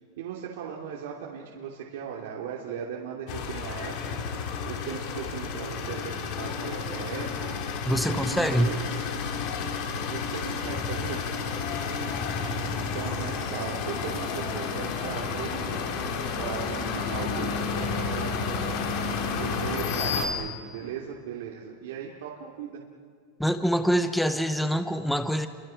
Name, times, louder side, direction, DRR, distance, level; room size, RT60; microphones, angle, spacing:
voice 1, 0.2-4.2 4.6-7.5 7.9-9.1 10.1-11.2 11.7-12.2 12.7-16.0 16.4-22.8, right 8 dB, 70° right, -2 dB, 3.0 m, -38 dB
sound 1, 3.3-20.3, left 5 dB, 45° left, 3.0 m, -31 dB
voice 2, 7.9-8.7 23.4-25.5, equal, ahead, 9 dB, 0.8 m, -25 dB
30.0 x 24.5 x 6.0 m, 2.1 s
supercardioid pair, 170°, 0 cm